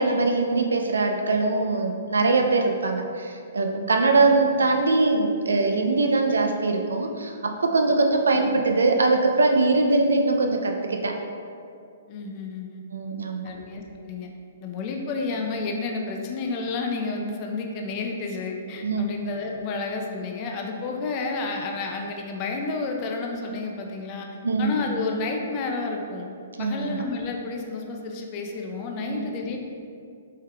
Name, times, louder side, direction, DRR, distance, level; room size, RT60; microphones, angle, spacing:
voice 1, 0.0-11.1 12.9-13.5 18.8-19.1 24.4-24.7 26.6-27.0 29.1-29.2, right 3 dB, 80° right, 3 dB, 0.4 m, -22 dB
voice 2, 12.1-12.8 13.4-14.3 14.6-24.3 24.6-26.3 26.6-29.6, left 3 dB, 35° left, 1 dB, 0.5 m, -31 dB
4.6 x 3.4 x 2.3 m, 2.4 s
hypercardioid pair, 125°, 0 cm